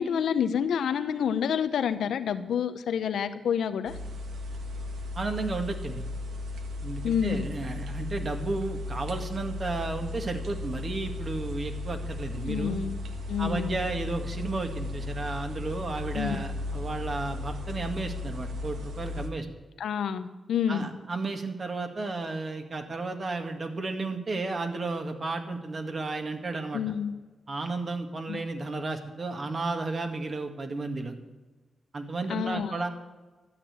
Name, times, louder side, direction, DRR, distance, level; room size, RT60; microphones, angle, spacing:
voice 1, 0.0-3.9 7.0-7.5 12.5-13.0 13.3-13.7 16.1-16.4 19.8-20.9 26.7-27.1 28.3-28.4 32.3-32.7, left 8 dB, 80° left, 10 dB, 0.9 m, -28 dB
sound 1, 3.9-19.3, left 2 dB, 80° right, 1.4 m, -36 dB
voice 2, 5.2-6.0 6.8-12.8 13.4-19.5 20.7-26.8 27.5-31.1 31.9-32.9, right 3 dB, 50° right, 5 dB, 2.0 m, -33 dB
13.0 x 6.8 x 9.6 m, 1.2 s
cardioid pair, 55°, 0 cm